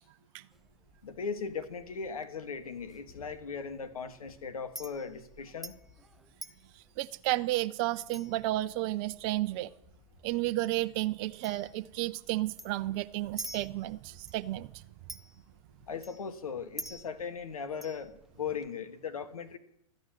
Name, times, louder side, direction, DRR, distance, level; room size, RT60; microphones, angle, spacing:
Chink clink, 0.5-18.7, right 1 dB, ahead, 0.6 m, -50 dB
voice 1, 1.0-5.7 15.9-19.6, left 6 dB, 85° left, 10 dB, 1.5 m, -38 dB
voice 2, 7.0-9.7 10.2-14.8, right 16 dB, 45° right, 12 dB, 0.5 m, -32 dB
13.5 x 9.4 x 7.3 m, 0.73 s
hypercardioid pair, 115°, 18 cm